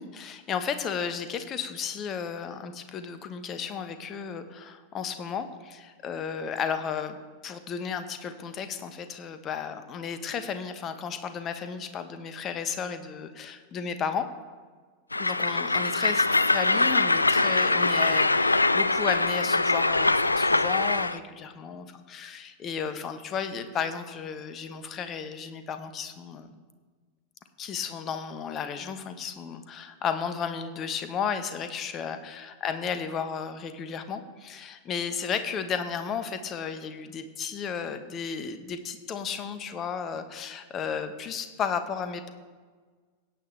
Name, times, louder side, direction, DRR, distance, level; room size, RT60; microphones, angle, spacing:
voice 1, 0.0-7.2 7.4-14.3 15.2-26.6 27.6-42.3, left 7 dB, 30° left, 10 dB, 1.0 m, -33 dB
Train, 15.1-21.2, left 2 dB, 80° left, 0.3 m, -23 dB
17.0 x 8.6 x 3.3 m, 1.5 s
figure-of-eight pair, 90°, 0 cm